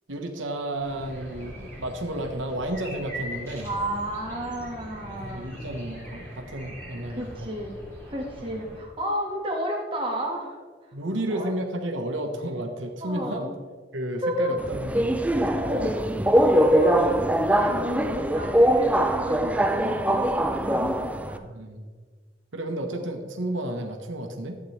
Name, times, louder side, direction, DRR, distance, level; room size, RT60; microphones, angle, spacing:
voice 1, 0.1-3.7 5.0-7.5 8.4-8.5 10.9-13.5 13.9-15.9 21.4-21.9 22.5-24.6, right 1 dB, 90° right, 3 dB, 1.2 m, -32 dB
sound 1, 0.8-8.8, equal, 15° left, 2.5 m, -41 dB
voice 2, 3.6-5.5 7.1-7.7 8.1-10.6 11.3-11.5 13.0-13.5 14.2-14.5 15.5-16.1 16.5-21.4, equal, 25° right, -1 dB, 1.7 m, -31 dB
Subway metro underground, 14.6-21.4, right 1 dB, 5° right, 0.3 m, -22 dB
12.0 x 8.6 x 3.3 m, 1.5 s
head